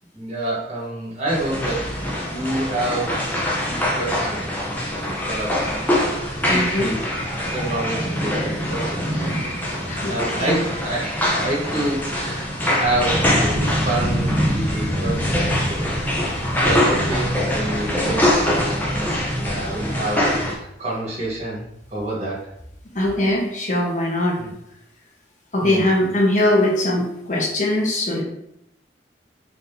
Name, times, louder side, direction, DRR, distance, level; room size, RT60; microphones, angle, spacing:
voice 1, 0.1-3.2 3.6-4.6 5.1-5.6 5.9-7.0 7.4-9.3 10.1-16.0 16.6-21.6 21.9-22.4 24.4-24.5 25.6-25.9, right 1 dB, 35° right, -6 dB, 1.4 m, -28 dB
sound 1, 1.3-20.5, equal, 10° left, 0.6 m, -23 dB
voice 2, 6.5-7.0 9.9-10.1 10.4-10.6 22.9-24.4 25.5-28.2, left 1 dB, 40° left, -3 dB, 1.0 m, -21 dB
4.0 x 3.6 x 2.7 m, 0.79 s
head